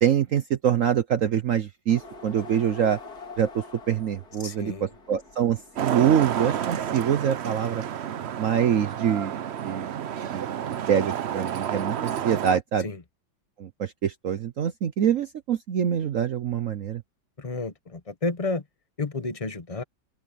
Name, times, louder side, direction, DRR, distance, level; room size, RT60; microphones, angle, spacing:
voice 1, 0.0-3.0 3.4-7.8 8.4-9.3 9.6-9.9 10.3-10.5 10.9-12.9 13.6-17.0, right 9 dB, 60° right, 0.9 m, -25 dB
sound 1, 1.9-6.9, left 3 dB, 50° left, 3.7 m, -45 dB
voice 2, 4.4-4.9 12.8-13.0 17.4-18.6 19.0-19.8, left 3 dB, 25° left, 0.8 m, -31 dB
Traffic noise roadway noise, 5.8-12.6, right 9 dB, 80° right, 0.5 m, -30 dB
open air
omnidirectional pair, 2.1 m